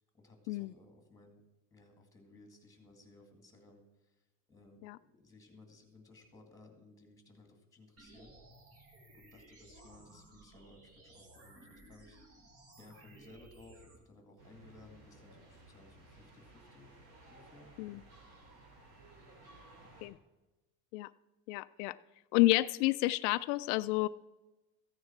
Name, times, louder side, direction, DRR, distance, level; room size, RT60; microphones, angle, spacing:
voice 1, 0.1-1.4 1.7-4.2 4.5-4.8 5.2-8.4 8.6-8.7 9.1-12.4 12.8-16.9 17.3-17.7, left 2 dB, 5° left, 4 dB, 2.1 m, -59 dB
sound 1, 8.0-14.0, right 1 dB, 30° right, 2.1 m, -58 dB
sound 2, 14.4-20.1, right 2 dB, 75° right, 5.1 m, -57 dB
voice 2, 21.5-22.0 22.3-24.1, left 19 dB, 85° left, 13 dB, 0.5 m, -30 dB
14.5 x 9.6 x 4.5 m, 1.1 s
cardioid pair, 160°, 45 cm